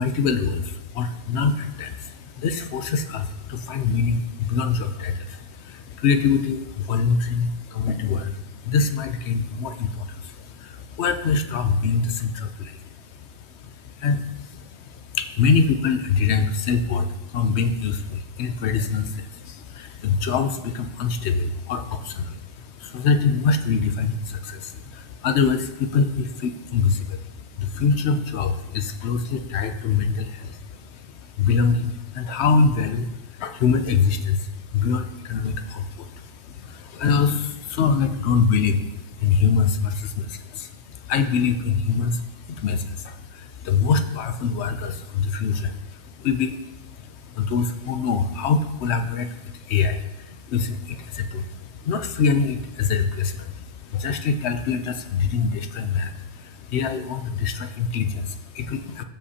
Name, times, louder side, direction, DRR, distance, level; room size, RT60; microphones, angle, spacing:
voice 1, 0.0-59.0, left 5 dB, 65° left, 9 dB, 0.8 m, -24 dB
14.5 x 5.2 x 2.8 m, 0.96 s
omnidirectional pair, 1.3 m